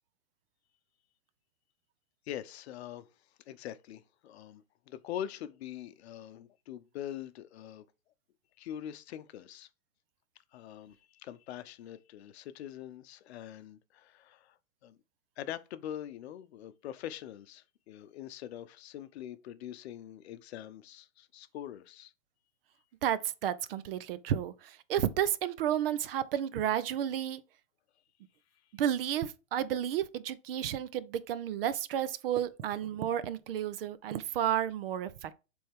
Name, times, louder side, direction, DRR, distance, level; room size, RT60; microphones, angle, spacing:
voice 1, 2.3-3.1 3.5-7.8 8.6-9.7 10.5-14.6 14.8-15.0 15.4-22.1, left 11 dB, 55° left, 0.7 m, -43 dB
voice 2, 23.0-27.4 28.7-35.3, right 10 dB, 45° right, 0.6 m, -32 dB
7.5 x 3.5 x 3.5 m
hypercardioid pair, 135°, 40 cm